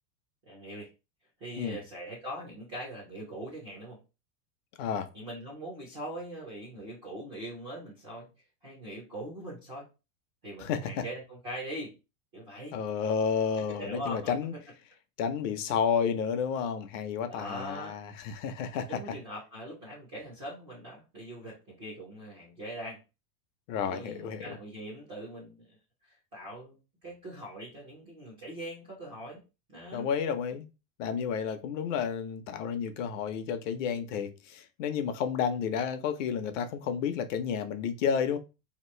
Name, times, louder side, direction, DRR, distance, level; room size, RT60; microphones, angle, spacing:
voice 1, 0.4-0.9 1.4-4.0 5.1-8.3 8.6-9.9 10.4-11.9 12.3-12.8 13.6-14.3 17.3-17.9 18.7-23.0 23.8-25.7 26.0-29.4 29.7-30.1, right 1 dB, 20° right, 0.3 m, -41 dB
voice 2, 10.6-11.0 12.7-14.5 15.2-19.0 23.7-24.5 29.9-30.7 31.0-38.4, left 7 dB, 50° left, 0.6 m, -31 dB
2.9 x 2.5 x 4.2 m
supercardioid pair, 165°, 50 cm